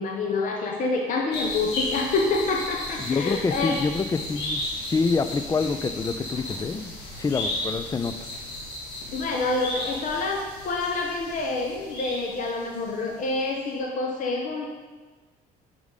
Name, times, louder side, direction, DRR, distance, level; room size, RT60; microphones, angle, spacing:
voice 1, 0.0-3.8 9.1-14.7, left 3 dB, 50° left, 0 dB, 0.8 m, -27 dB
sound 1, 1.3-13.0 13.2-13.3, left 1 dB, 85° left, 1.6 m, -34 dB
voice 2, 3.0-4.6 4.9-8.2, left 4 dB, 20° left, 11 dB, 0.3 m, -26 dB
5.3 x 5.0 x 5.0 m, 1.4 s
cardioid pair, 110°, 17 cm